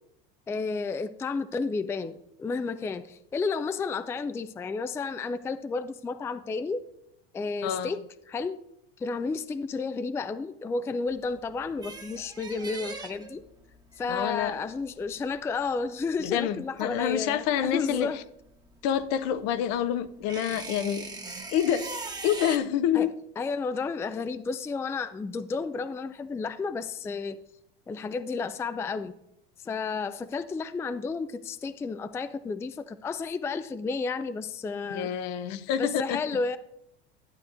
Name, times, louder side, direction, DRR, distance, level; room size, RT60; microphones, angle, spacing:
voice 1, 0.5-6.8 7.3-8.0 8.3-8.6 9.0-13.4 14.0-18.2 22.9-23.1 23.4-27.4 27.9-29.1 29.6-35.1 35.8-36.6, left 4 dB, 10° left, 12 dB, 0.3 m, -32 dB
sound 1, 11.1-17.7 17.9-22.6, right 3 dB, 15° right, 1.1 m, -41 dB
voice 2, 14.1-14.6 16.2-18.2 18.8-21.1 21.5-21.9 22.2-23.1 34.9-36.2, left 9 dB, 60° left, 13 dB, 0.7 m, -27 dB
11.5 x 8.2 x 2.5 m, 0.80 s
hypercardioid pair, 90°, 29 cm